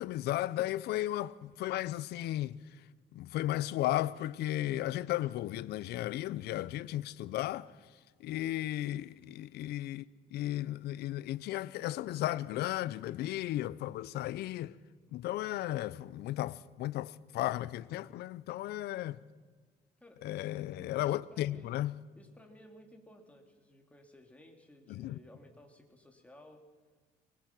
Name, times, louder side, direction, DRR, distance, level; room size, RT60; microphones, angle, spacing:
voice 1, 0.0-2.6 3.1-7.7 8.2-10.0 10.3-14.8 15.1-19.2 20.2-22.0 24.9-25.2, left 14 dB, 75° left, 0.6 m, -35 dB
voice 2, 20.0-20.6 20.9-21.8 22.2-26.6, left 1 dB, 10° left, 3.1 m, -57 dB
24.0 x 20.0 x 6.1 m
cardioid pair, 110°, 17 cm